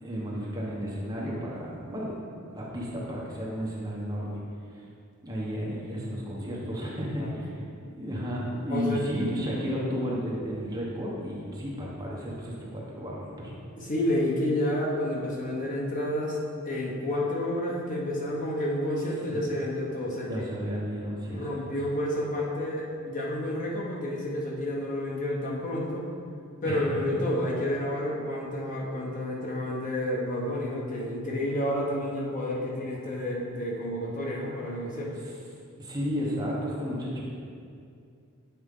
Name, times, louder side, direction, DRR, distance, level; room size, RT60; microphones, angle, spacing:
voice 1, 0.0-2.1 2.5-4.4 5.2-7.5 7.8-13.5 19.3-19.4 20.2-21.6 26.6-26.8 35.8-37.2, equal, 15° right, -5 dB, 1.1 m, -33 dB
voice 2, 8.7-9.1 13.8-16.4 16.6-20.4 21.3-26.1 26.6-35.2, left 1 dB, 40° left, -3 dB, 0.9 m, -30 dB
8.1 x 4.4 x 3.7 m, 2.3 s
head